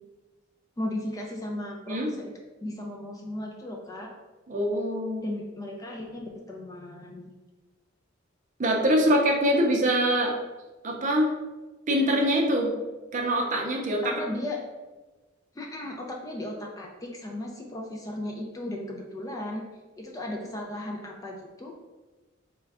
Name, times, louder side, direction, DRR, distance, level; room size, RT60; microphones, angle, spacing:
voice 1, 0.8-2.3 2.6-4.1 5.2-7.3 14.0-14.6 15.5-19.6 20.0-21.7, left 1 dB, 15° left, 0 dB, 0.3 m, -36 dB
voice 2, 4.5-5.2 8.6-10.3 10.8-11.3 11.9-12.7 13.1-14.1, equal, 40° right, 1 dB, 0.5 m, -24 dB
3.4 x 2.2 x 3.5 m, 1.2 s
head